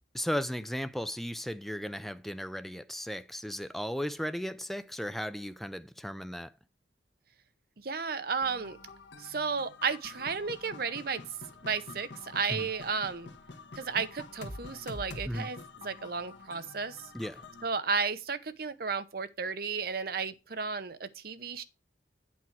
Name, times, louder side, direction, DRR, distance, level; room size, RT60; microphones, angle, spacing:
voice 1, 0.1-6.5 12.5-12.7 15.3-15.5 17.1-17.4, equal, ahead, 0.4 m, -36 dB
voice 2, 7.8-8.8 9.2-11.2 11.6-13.3 13.7-15.6 15.8-17.1 17.6-21.6, right 5 dB, 50° right, 0.8 m, -33 dB
sound 1, 8.4-17.7, left 3 dB, 75° left, 1.4 m, -47 dB
8.4 x 4.5 x 5.9 m
head